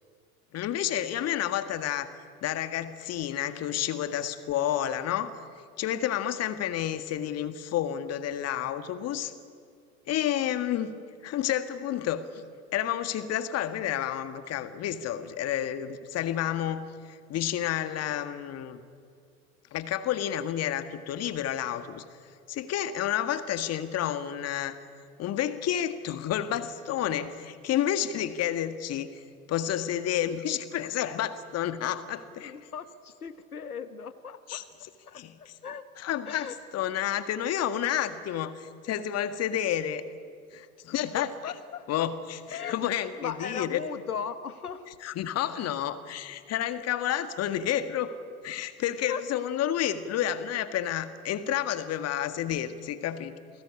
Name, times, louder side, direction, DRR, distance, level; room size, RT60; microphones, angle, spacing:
voice 1, 0.5-2.1 2.4-5.3 5.8-9.3 10.1-10.9 11.2-12.2 12.7-18.8 19.7-22.0 22.5-24.8 25.2-29.1 29.5-32.5 34.5-35.5 36.0-40.0 40.5-41.3 41.9-43.8 45.0-48.1 48.4-53.3, left 11 dB, 35° left, 11 dB, 1.9 m, -30 dB
voice 2, 32.4-34.6 35.1-35.8 36.3-36.6 41.2-42.1 42.5-44.9 49.1-49.2, left 7 dB, 80° left, 12 dB, 1.2 m, -38 dB
28.5 x 20.0 x 9.9 m, 2.2 s
figure-of-eight pair, 80°, 44 cm